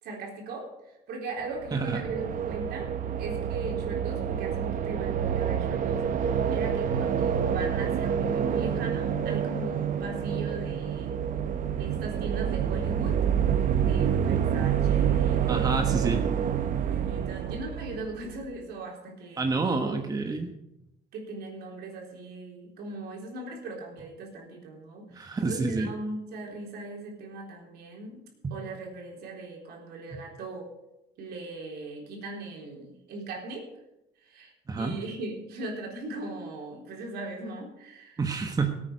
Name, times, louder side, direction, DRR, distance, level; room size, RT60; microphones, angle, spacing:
voice 1, 0.0-11.2 11.7-13.2 13.8-15.9 16.7-20.1 21.1-28.2 28.5-30.7 31.2-33.6 34.2-34.5 34.8-38.2, right 2 dB, 75° right, 0 dB, 3.9 m, -39 dB
sound 1, 1.5-18.5, right 8 dB, 50° right, 1.0 m, -28 dB
voice 2, 15.5-16.3 19.4-20.5 25.1-25.9 34.7-35.0 38.2-38.8, right 4 dB, 20° right, 5 dB, 1.2 m, -28 dB
18.5 x 8.8 x 5.1 m, 0.91 s
cardioid pair, 110°, 17 cm